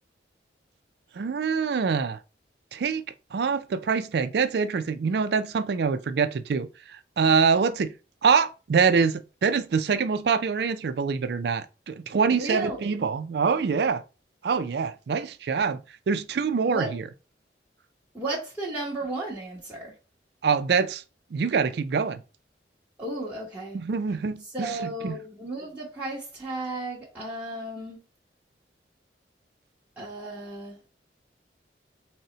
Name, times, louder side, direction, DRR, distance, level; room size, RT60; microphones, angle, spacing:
voice 1, 1.2-2.2 2.7-3.0 3.3-7.9 8.2-14.0 14.4-17.0 20.4-21.0 21.3-22.2 23.7-25.2, right 5 dB, 60° right, 0.4 m, -25 dB
voice 2, 12.1-12.9 16.6-16.9 18.1-19.9 23.0-23.8 24.5-28.0 30.0-30.8, right 2 dB, 10° right, 1.2 m, -34 dB
4.0 x 2.1 x 3.8 m
head